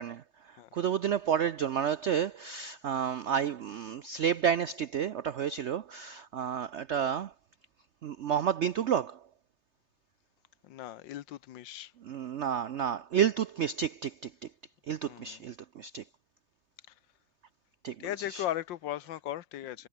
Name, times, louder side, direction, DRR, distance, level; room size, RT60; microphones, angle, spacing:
voice 1, 0.0-7.3 8.0-9.2 12.0-14.5 14.9-16.1 17.8-18.0 18.3-18.4, right 8 dB, 75° right, 0.6 m, -31 dB
voice 2, 10.6-11.9 15.0-15.4 18.0-19.9, left 12 dB, 90° left, 1.6 m, -37 dB
omnidirectional pair, 1.9 m